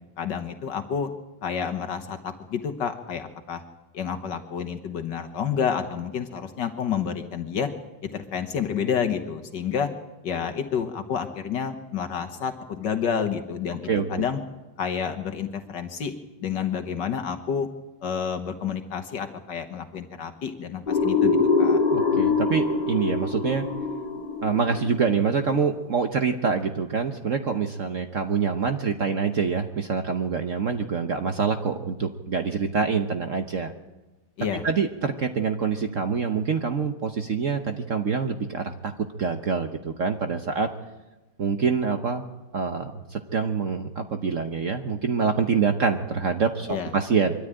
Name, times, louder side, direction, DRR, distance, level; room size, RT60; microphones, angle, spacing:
voice 1, 0.2-1.1 1.4-3.6 3.9-7.7 8.1-9.9 10.2-14.4 14.8-16.1 16.4-17.7 18.0-21.8 34.4-34.7 46.7-46.9, left 7 dB, 70° left, 7 dB, 1.8 m, -29 dB
sound 1, 20.9-25.6, left 4 dB, 25° left, 3.4 m, -24 dB
voice 2, 21.9-23.7 24.4-33.7 34.6-38.9 39.2-40.7 41.4-42.2 42.5-46.7 46.9-47.3, right 5 dB, 50° right, 6 dB, 1.2 m, -25 dB
23.5 x 13.5 x 8.9 m, 1.1 s
omnidirectional pair, 2.0 m